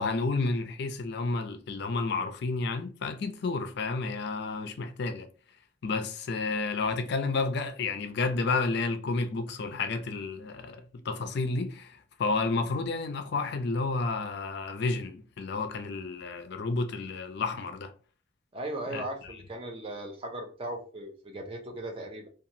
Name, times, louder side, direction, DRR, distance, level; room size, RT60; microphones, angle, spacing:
voice 1, 0.0-5.3 5.8-17.9 18.9-19.3, left 3 dB, 55° left, 0.4 m, -31 dB
voice 2, 18.5-22.3, right 1 dB, 25° right, 0.5 m, -37 dB
2.8 x 2.3 x 2.6 m
head